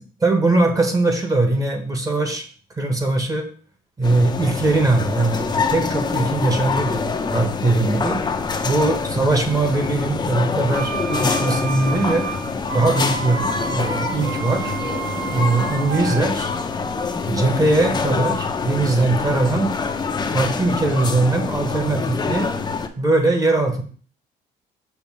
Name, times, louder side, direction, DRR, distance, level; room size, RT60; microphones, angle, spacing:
voice 1, 0.2-2.4 2.8-3.5 4.0-8.2 8.6-12.3 12.7-14.7 15.3-16.5 17.3-19.7 20.3-22.5 23.0-23.8, right 2 dB, 20° right, 4 dB, 1.3 m, -20 dB
sound 1, 4.0-22.9, left 4 dB, 25° left, 0.7 m, -25 dB
sound 2, 10.7-16.2, right 7 dB, 90° right, 0.6 m, -30 dB
7.0 x 2.7 x 5.5 m, 0.43 s
cardioid pair, 110°, 17 cm